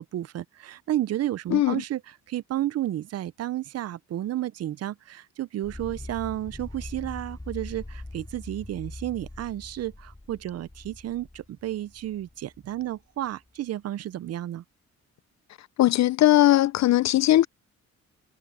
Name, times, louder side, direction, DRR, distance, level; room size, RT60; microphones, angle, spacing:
voice 1, 0.0-14.6, right 13 dB, 55° right, 0.5 m, -32 dB
sound 1, 5.6-13.0, left 2 dB, 10° left, 4.0 m, -42 dB
voice 2, 15.8-17.5, left 14 dB, 65° left, 0.6 m, -19 dB
cardioid pair, 90°, 30 cm